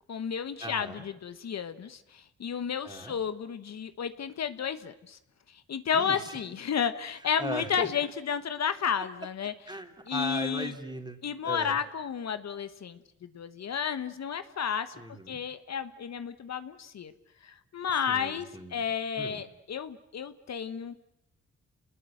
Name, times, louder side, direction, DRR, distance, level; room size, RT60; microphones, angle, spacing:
voice 1, 0.1-5.2 5.5-9.5 10.1-10.7 11.2-13.0 13.3-14.9 15.3-17.1 17.4-18.5 18.7-20.9, left 7 dB, 60° left, 11 dB, 1.3 m, -32 dB
voice 2, 0.6-1.0 2.8-3.2 5.9-6.4 7.4-7.9 9.7-11.2 11.4-11.8 14.9-15.4 18.1-18.8 19.2-19.4, right 1 dB, 15° right, 5 dB, 3.6 m, -38 dB
29.0 x 20.5 x 7.8 m, 0.83 s
cardioid pair, 70°, 31 cm